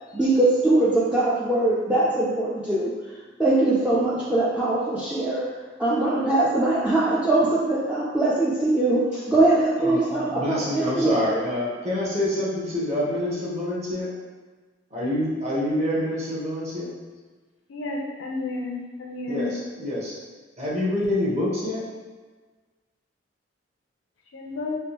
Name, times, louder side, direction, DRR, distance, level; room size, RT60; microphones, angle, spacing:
voice 1, 0.1-2.9 3.4-5.5 5.8-11.2, right 2 dB, 5° right, -8 dB, 0.4 m, -22 dB
voice 2, 9.8-14.1 14.9-16.9 19.3-20.1 20.6-21.9, left 1 dB, 35° right, -6 dB, 0.9 m, -27 dB
voice 3, 17.7-19.6 24.3-24.8, left 2 dB, 80° left, 0 dB, 0.6 m, -31 dB
3.4 x 2.5 x 2.8 m, 1.4 s
head